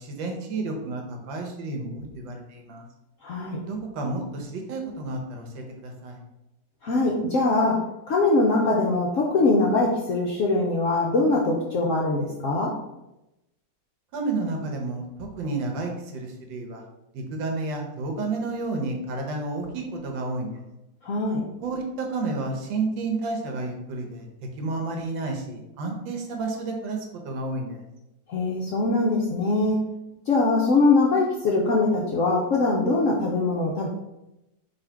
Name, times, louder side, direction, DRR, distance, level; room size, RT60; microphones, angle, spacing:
voice 1, 0.0-2.9 3.6-6.2 14.1-16.8 17.1-20.6 21.6-24.3 24.6-27.8, right 3 dB, 85° right, 2 dB, 1.5 m, -31 dB
voice 2, 3.2-3.6 6.8-7.8 8.1-12.7 21.0-21.4 28.3-29.8 30.3-33.9, left 3 dB, 70° left, -3 dB, 0.7 m, -22 dB
3.9 x 2.8 x 4.4 m, 0.93 s
omnidirectional pair, 2.0 m